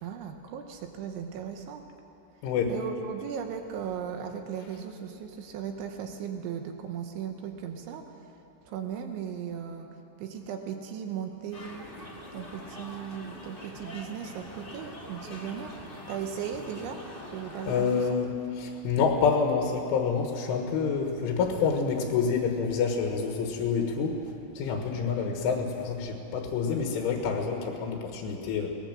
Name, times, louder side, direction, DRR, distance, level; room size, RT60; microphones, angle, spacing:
voice 1, 0.0-1.8 2.7-9.9 10.2-11.9 12.3-17.0 17.3-18.1, right 8 dB, 80° right, 5 dB, 3.3 m, -37 dB
sound 1, 11.5-18.1, left 1 dB, 25° left, 1.1 m, -44 dB
voice 2, 17.7-24.2 24.6-28.7, left 5 dB, 90° left, 2 dB, 4.0 m, -27 dB
21.5 x 19.5 x 7.6 m, 3.0 s
omnidirectional pair, 5.5 m